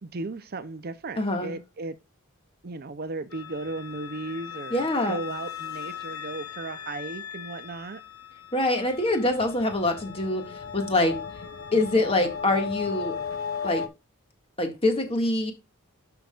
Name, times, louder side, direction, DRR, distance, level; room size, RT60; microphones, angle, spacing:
voice 1, 0.0-2.0 2.6-8.0, right 3 dB, 45° right, 0.6 m, -36 dB
voice 2, 1.2-1.5 4.7-5.2 8.5-11.2 11.7-13.2 13.6-13.8 14.6-15.5, left 2 dB, 25° left, 1.9 m, -25 dB
sound 1, 3.3-13.9, left 7 dB, 65° left, 1.1 m, -37 dB
11.5 x 5.8 x 2.4 m
head